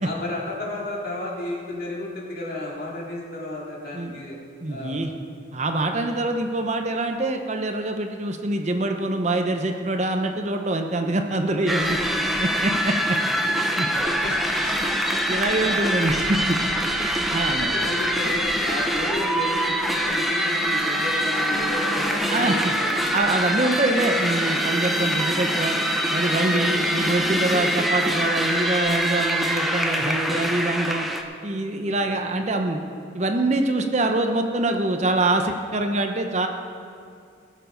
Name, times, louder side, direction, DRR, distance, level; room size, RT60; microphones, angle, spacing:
voice 1, 0.0-4.4 4.7-5.0 13.5-14.5 15.2-15.3 15.6-15.9 17.6-23.0 26.5-26.9 31.8-32.2, left 1 dB, 50° left, -4 dB, 2.6 m, -32 dB
voice 2, 4.6-5.1 5.5-12.0 12.4-13.2 13.4-13.5 13.8-13.9 15.3-16.6 17.3-17.7 22.3-22.7 23.1-25.8 26.1-31.1 31.4-32.8 33.1-36.5, right 2 dB, 35° right, 5 dB, 0.7 m, -24 dB
sound 1, 11.7-31.2, equal, ahead, 0.7 m, -24 dB
19.0 x 7.0 x 5.1 m, 2.3 s
head